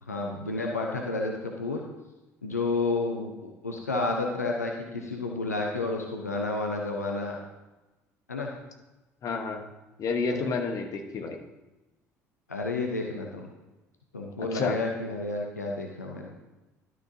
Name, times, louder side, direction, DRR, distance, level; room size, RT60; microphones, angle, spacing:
voice 1, 0.0-1.8 2.4-7.4 8.3-8.5 10.2-10.5 12.5-13.5 14.1-16.3, left 3 dB, 85° left, 1 dB, 0.7 m, -31 dB
voice 2, 9.2-9.7 10.0-11.4 14.5-14.8, left 4 dB, 40° left, 4 dB, 1.1 m, -30 dB
11.5 x 6.2 x 2.7 m, 1.1 s
figure-of-eight pair, 60°, 8 cm